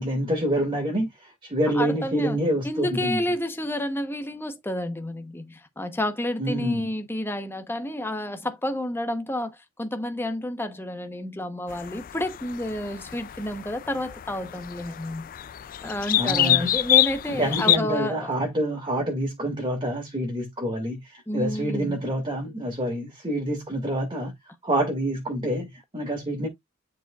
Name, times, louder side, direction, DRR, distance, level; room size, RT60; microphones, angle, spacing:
voice 1, 0.0-3.2 6.4-6.8 16.2-16.7 17.3-24.3 24.6-26.5, right 1 dB, 20° right, 2.1 m, -27 dB
voice 2, 1.7-2.4 2.6-15.3 15.8-18.3 21.3-22.0, left 1 dB, 10° left, 0.9 m, -30 dB
sound 1, 11.7-17.8, left 13 dB, 40° left, 0.3 m, -26 dB
11.0 x 4.7 x 2.4 m
head